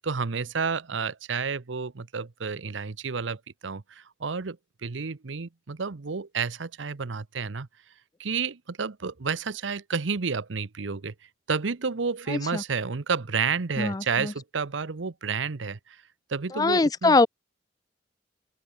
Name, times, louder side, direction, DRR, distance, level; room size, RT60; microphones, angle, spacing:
voice 1, 0.0-4.6 4.8-7.7 8.2-11.1 11.5-16.0 16.3-17.2, right 5 dB, 85° right, 0.8 m, -30 dB
voice 2, 12.3-12.6 13.8-14.3 16.5-17.3, left 3 dB, 20° left, 0.4 m, -23 dB
open air
head